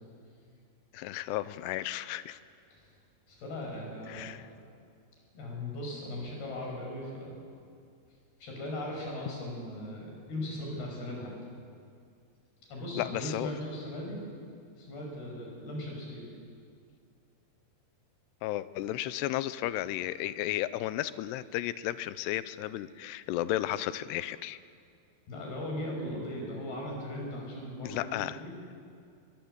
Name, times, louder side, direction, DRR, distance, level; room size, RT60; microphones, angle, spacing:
voice 1, 0.9-2.4 4.1-4.4 13.0-13.5 18.4-24.6 27.8-28.4, left 14 dB, 90° left, 15 dB, 2.8 m, -33 dB
voice 2, 3.3-4.3 5.3-7.3 8.4-11.3 12.7-14.2 14.8-16.3 25.3-28.5, left 1 dB, 70° left, 0 dB, 7.8 m, -38 dB
22.5 x 22.5 x 8.0 m, 2.4 s
omnidirectional pair, 4.7 m